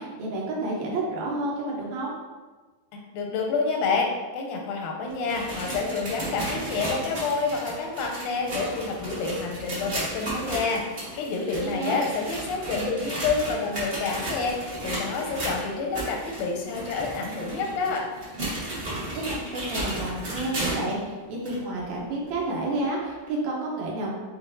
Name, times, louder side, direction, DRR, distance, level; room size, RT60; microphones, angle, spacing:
voice 1, 0.0-2.1 11.6-12.1 19.2-24.2, right 2 dB, 75° right, -3 dB, 2.0 m, -30 dB
voice 2, 2.9-14.6 14.8-18.1, left 4 dB, 90° left, 1 dB, 2.2 m, -28 dB
sound 1, 5.1-21.0 21.4-21.6 22.3-22.4 23.3-23.4, right 1 dB, 45° right, 0.8 m, -34 dB
7.4 x 2.5 x 2.6 m, 1.3 s
omnidirectional pair, 3.5 m